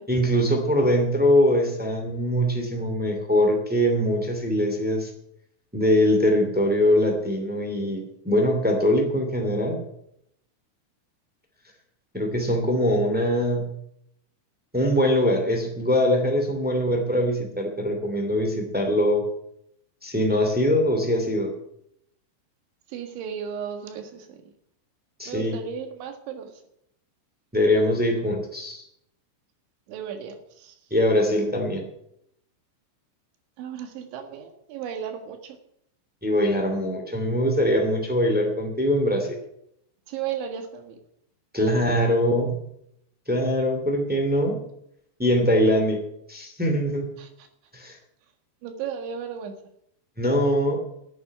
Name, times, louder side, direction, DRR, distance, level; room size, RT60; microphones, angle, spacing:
voice 1, 0.1-5.1 5.7-9.8 12.1-13.6 14.7-19.2 20.0-21.5 25.2-25.6 27.5-28.8 30.9-31.8 36.2-39.3 41.5-42.6 43.2-44.6 45.2-46.0 46.3-47.1 47.7-48.0 50.2-50.8, equal, 5° right, 2 dB, 0.8 m, -22 dB
voice 2, 22.9-24.4 25.3-26.5 29.9-30.8 33.6-35.6 40.1-41.0 47.2-47.3 48.6-49.6, right 8 dB, 80° right, 6 dB, 4.0 m, -34 dB
11.5 x 8.6 x 9.8 m, 0.74 s
omnidirectional pair, 5.3 m